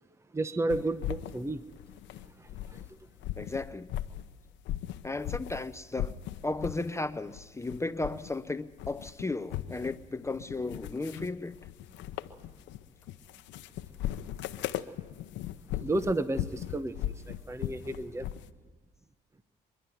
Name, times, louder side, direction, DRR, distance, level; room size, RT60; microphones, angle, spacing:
voice 1, 0.3-1.6 2.1-2.8 15.8-18.3, right 2 dB, 15° right, 0.9 m, -32 dB
sound 1, 0.7-2.9 3.2-5.6 6.0-6.9 7.3-8.4 8.7-18.5, left 12 dB, 80° left, 0.9 m, -38 dB
voice 2, 3.4-3.9 5.0-6.1 6.4-11.6, left 2 dB, 15° left, 0.6 m, -35 dB
25.5 x 11.5 x 9.3 m
supercardioid pair, 75°, 19 cm